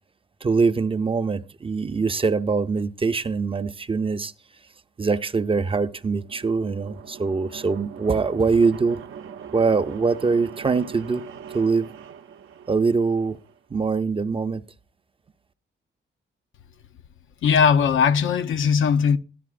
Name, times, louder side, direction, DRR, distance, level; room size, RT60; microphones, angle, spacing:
voice 1, 0.4-4.3 5.0-9.0 9.5-11.2 11.5-11.9 12.7-13.4 13.7-14.6, right 4 dB, 25° right, 0.5 m, -23 dB
sound 1, 5.8-13.6, right 7 dB, 80° right, 0.6 m, -41 dB
voice 2, 17.4-19.2, left 6 dB, 75° left, 0.6 m, -19 dB
13.5 x 11.0 x 2.4 m
cardioid pair, 115°, 21 cm